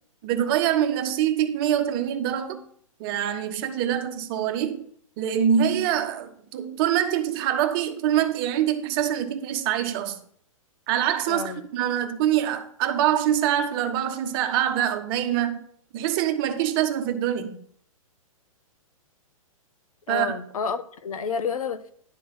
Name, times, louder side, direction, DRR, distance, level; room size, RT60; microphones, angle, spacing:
voice 1, 0.2-2.6 3.0-4.9 5.2-10.2 10.9-15.6 15.9-17.6 20.1-20.3, right 10 dB, 40° right, 1.2 m, -24 dB
voice 2, 11.3-11.6 20.1-21.9, left 6 dB, 80° left, 1.0 m, -30 dB
11.0 x 3.9 x 6.7 m
hypercardioid pair, 130°, 18 cm